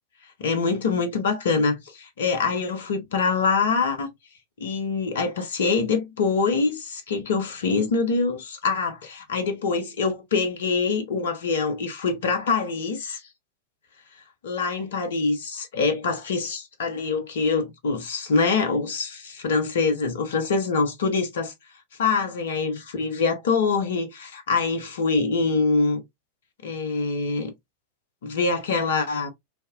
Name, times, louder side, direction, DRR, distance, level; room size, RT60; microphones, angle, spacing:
voice 1, 0.4-4.1 4.6-13.2 14.4-21.5 22.0-26.0 26.6-27.5 28.2-29.3, left 4 dB, 60° left, 0.7 m, -24 dB
3.3 x 2.7 x 2.4 m
figure-of-eight pair, 90°, 0 cm